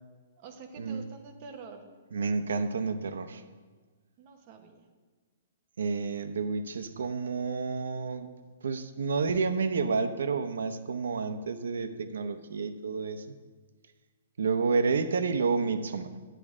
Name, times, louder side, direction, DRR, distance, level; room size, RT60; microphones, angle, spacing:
voice 1, 0.4-1.8 4.2-4.9, right 4 dB, 30° right, 5 dB, 0.8 m, -47 dB
voice 2, 2.1-3.4 5.8-8.3 8.6-13.2 14.4-16.1, right 4 dB, 85° right, 10 dB, 0.7 m, -30 dB
10.0 x 9.9 x 3.6 m, 1.4 s
hypercardioid pair, 175°, 0 cm